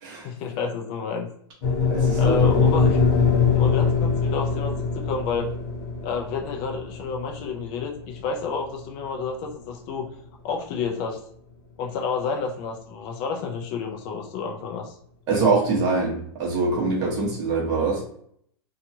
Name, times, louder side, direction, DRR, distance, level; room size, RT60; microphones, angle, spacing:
voice 1, 0.2-1.3 2.1-3.0 3.5-5.5 6.0-10.1 10.4-11.2 11.8-15.0, left 5 dB, 30° left, 2 dB, 0.3 m, -30 dB
sound 1, 1.6-9.9, left 5 dB, 50° left, 0.9 m, -23 dB
voice 2, 1.9-2.6 15.3-18.0, right 4 dB, 30° right, -3 dB, 1.0 m, -24 dB
2.8 x 2.3 x 2.6 m, 0.65 s
supercardioid pair, 160°, 14 cm